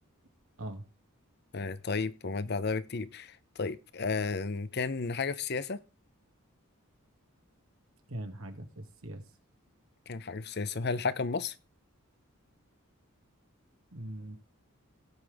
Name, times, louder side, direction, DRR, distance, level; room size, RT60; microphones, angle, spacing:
voice 1, 1.5-5.8 10.1-11.5, left 4 dB, 50° left, 0.7 m, -33 dB
voice 2, 8.1-9.2 13.9-14.4, right 1 dB, 75° right, 2.2 m, -41 dB
17.5 x 6.0 x 3.5 m
head